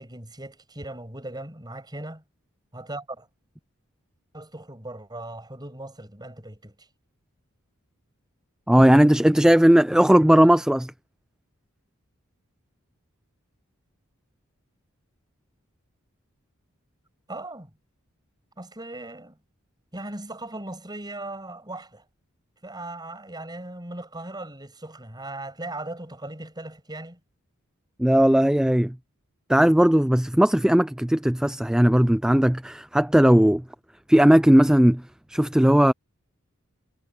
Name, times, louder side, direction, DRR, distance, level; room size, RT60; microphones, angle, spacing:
voice 1, 0.0-2.2 2.7-3.3 4.3-6.9 17.3-17.7 18.6-19.4 19.9-22.0 22.6-27.2, right 2 dB, 20° right, 6.6 m, -38 dB
voice 2, 8.7-10.9 28.0-28.9 29.5-33.6 34.1-35.0 35.3-35.9, equal, 5° right, 0.3 m, -17 dB
head